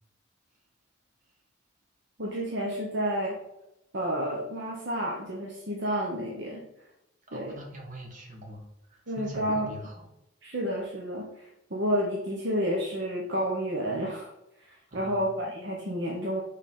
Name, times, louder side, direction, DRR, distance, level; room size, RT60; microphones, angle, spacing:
voice 1, 2.2-3.4 3.9-6.7 7.3-7.6 9.1-9.7 10.4-14.3 14.7-16.4, equal, 60° right, -2 dB, 1.0 m, -30 dB
voice 2, 7.3-10.1 14.9-15.3, equal, 40° right, 0 dB, 1.6 m, -43 dB
5.3 x 4.1 x 5.4 m, 0.87 s
head